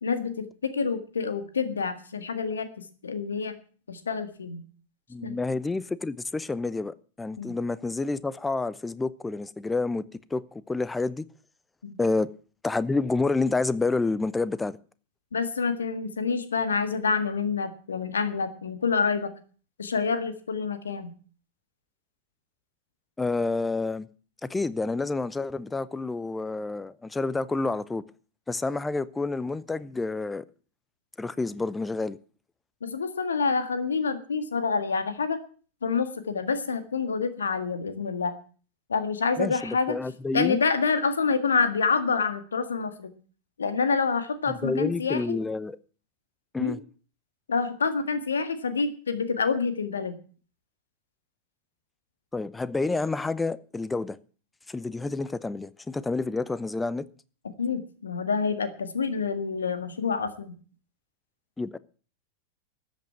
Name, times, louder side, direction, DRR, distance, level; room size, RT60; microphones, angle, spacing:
voice 1, 0.0-3.5 3.9-4.6 5.2-5.4 7.4-7.5 11.8-12.0 15.3-19.3 19.8-21.1 32.8-35.4 35.8-38.3 38.9-40.0 40.3-43.1 43.6-45.4 46.6-46.8 47.5-50.2 57.6-60.5, left 5 dB, 70° left, 1.7 m, -27 dB
voice 2, 5.1-10.0 10.3-11.3 12.0-12.3 12.6-14.8 23.2-24.1 24.4-28.0 28.5-30.4 31.2-32.2 39.4-40.6 44.5-45.8 46.5-46.8 52.3-54.2 54.7-57.1 61.6-61.8, left 3 dB, 10° left, 0.7 m, -29 dB
13.5 x 8.3 x 9.4 m
figure-of-eight pair, 90°, 0 cm